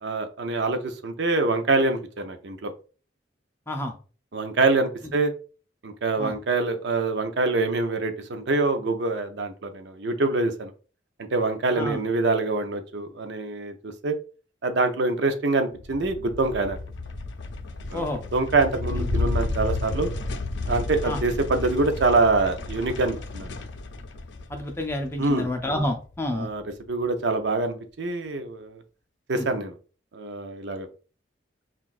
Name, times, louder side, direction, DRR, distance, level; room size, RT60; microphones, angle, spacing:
voice 1, 0.0-2.7 4.3-5.3 5.8-10.7 11.3-14.2 14.6-16.8 17.9-18.1 18.3-20.1 20.7-23.5 25.2-25.5 26.3-28.8 29.3-29.7 30.1-30.9, right 3 dB, 65° right, 7 dB, 0.5 m, -25 dB
sound 1, 15.8-26.4, left 2 dB, 65° left, 0.5 m, -32 dB
voice 2, 24.5-26.5 29.3-29.5, left 1 dB, 15° left, 3 dB, 0.5 m, -29 dB
5.7 x 2.4 x 2.4 m, 0.37 s
head